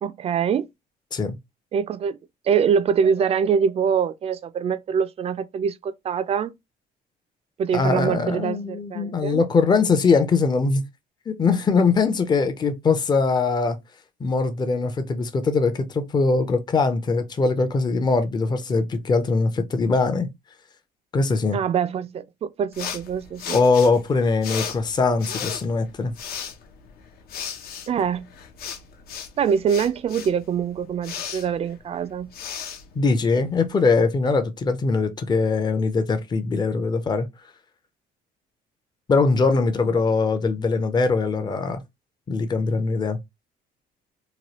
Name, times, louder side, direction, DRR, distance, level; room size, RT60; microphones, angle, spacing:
voice 1, 0.0-0.7 1.7-2.2 2.5-6.5 7.6-9.4 21.5-23.6 27.9-28.3 29.4-32.3, right 7 dB, 35° right, 0.3 m, -24 dB
voice 2, 7.7-10.9 11.3-13.8 14.2-20.3 21.1-21.6 23.5-26.1 33.0-37.3 39.1-41.8 42.3-43.2, left 4 dB, 25° left, 0.5 m, -21 dB
sound 1, 22.7-33.7, left 7 dB, 65° left, 0.7 m, -36 dB
2.9 x 2.3 x 2.9 m
cardioid pair, 110°, 17 cm